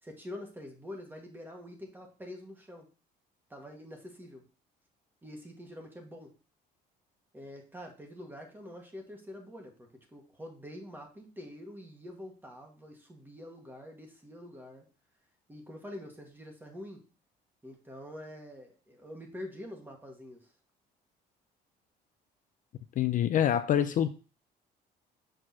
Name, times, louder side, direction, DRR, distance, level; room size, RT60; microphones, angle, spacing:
voice 1, 0.0-2.9 3.5-4.4 5.2-6.3 7.3-14.9 15.5-17.0 17.6-20.5, left 1 dB, 10° right, 2 dB, 1.9 m, -46 dB
voice 2, 23.0-24.1, left 10 dB, 50° left, 10 dB, 0.5 m, -26 dB
6.4 x 4.4 x 4.2 m, 0.36 s
cardioid pair, 110°, 17 cm